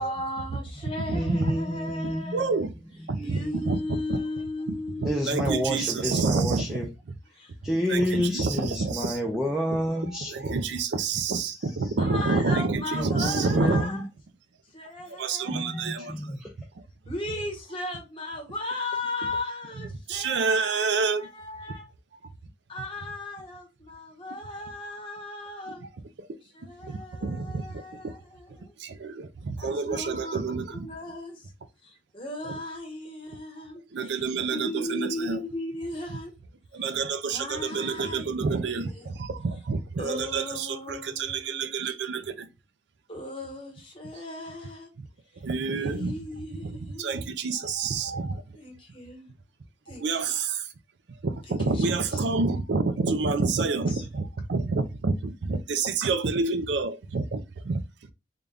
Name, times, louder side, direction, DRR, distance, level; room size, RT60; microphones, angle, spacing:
voice 1, 0.0-2.6 3.2-5.5 7.3-7.5 12.0-14.0 14.7-16.1 17.1-21.9 22.7-25.8 26.4-28.7 29.6-31.5 31.8-36.3 37.3-39.1 40.0-41.9 43.1-44.9 45.7-47.5 48.5-49.3 49.9-50.4 51.5-52.2 53.9-54.1, left 2 dB, 30° left, 1.1 m, -37 dB
voice 2, 1.1-3.8 5.0-6.9 7.6-10.7 11.4-12.0 12.9-14.1 15.5-16.5, equal, ahead, 0.4 m, -30 dB
voice 3, 2.3-2.7 3.1-3.4 3.7-3.8 5.3-6.8 7.9-9.1 10.5-13.8 15.2-16.0 20.1-21.2 27.2-27.4 29.6-30.6 34.0-35.4 36.8-38.9 39.7-42.2 45.5-46.1 47.0-48.2 50.0-50.3 51.7-54.2 54.5-55.1 55.7-57.2 57.7-57.8, right 4 dB, 80° right, 0.5 m, -27 dB
3.8 x 2.3 x 3.4 m
head